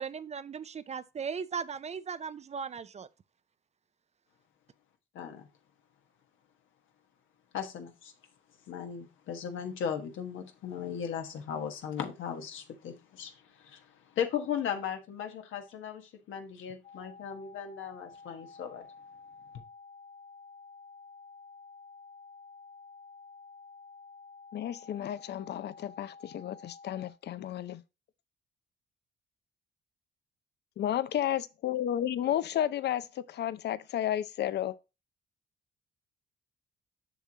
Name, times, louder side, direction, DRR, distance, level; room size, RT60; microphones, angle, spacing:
voice 1, 0.0-3.1, right 6 dB, 35° right, 0.4 m, -37 dB
voice 2, 5.1-5.5 7.5-8.1 8.7-13.9 14.1-18.9, left 8 dB, 80° left, 1.3 m, -37 dB
sound 1, 16.8-27.1, left 4 dB, 40° left, 1.0 m, -51 dB
voice 3, 24.5-27.8 30.8-34.8, left 11 dB, 60° left, 0.5 m, -32 dB
6.9 x 6.1 x 2.8 m
cardioid pair, 90°, 20 cm